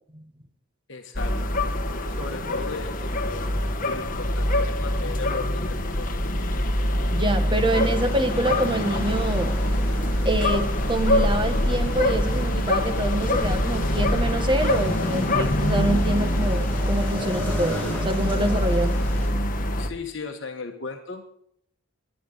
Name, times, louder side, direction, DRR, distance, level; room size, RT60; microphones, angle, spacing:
voice 1, 0.9-1.4 2.1-3.5 3.8-6.1 19.8-21.2, left 4 dB, 55° left, 3 dB, 1.5 m, -36 dB
sound 1, 1.1-19.9, left 1 dB, 40° left, 1.6 m, -24 dB
voice 2, 7.1-9.5 10.2-19.0, right 1 dB, 20° right, 9 dB, 1.3 m, -26 dB
sound 2, 7.6-19.3, left 1 dB, 10° left, 6.1 m, -38 dB
23.0 x 10.5 x 4.0 m, 0.71 s
head